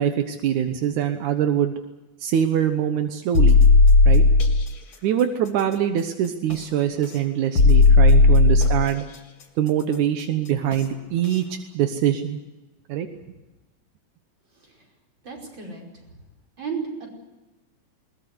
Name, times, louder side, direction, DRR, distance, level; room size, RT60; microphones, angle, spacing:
voice 1, 0.0-1.7 2.2-3.6 4.1-4.2 5.0-9.0 9.6-11.4 11.7-12.4 12.9-13.1, right 10 dB, 80° right, 7 dB, 2.5 m, -23 dB
sound 1, 3.3-4.6 6.5-6.6 7.6-8.9 10.7-10.8 11.3-11.4, left 3 dB, 45° left, 3.1 m, -14 dB
voice 2, 14.5-14.8 15.2-15.8 16.6-17.1, right 5 dB, 35° right, 0 dB, 5.9 m, -34 dB
21.0 x 20.0 x 8.1 m, 1.1 s
omnidirectional pair, 3.4 m